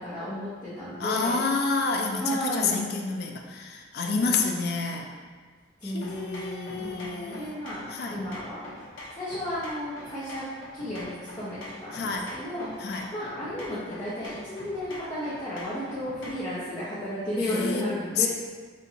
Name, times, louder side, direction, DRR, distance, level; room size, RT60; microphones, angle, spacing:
voice 1, 0.0-1.4 2.2-2.8 4.1-5.0 5.8-8.6 9.1-10.5 10.7-12.8 13.1-18.3, left 1 dB, 20° left, -11 dB, 0.7 m, -33 dB
voice 2, 1.0-5.1 5.8-7.6 7.9-8.2 11.9-12.4 12.8-13.1 17.4-17.9 18.1-18.3, left 4 dB, 55° left, 2 dB, 0.3 m, -29 dB
sound 1, 6.0-16.5, left 1 dB, 85° left, 0.7 m, -44 dB
4.2 x 2.5 x 2.8 m, 1.5 s
head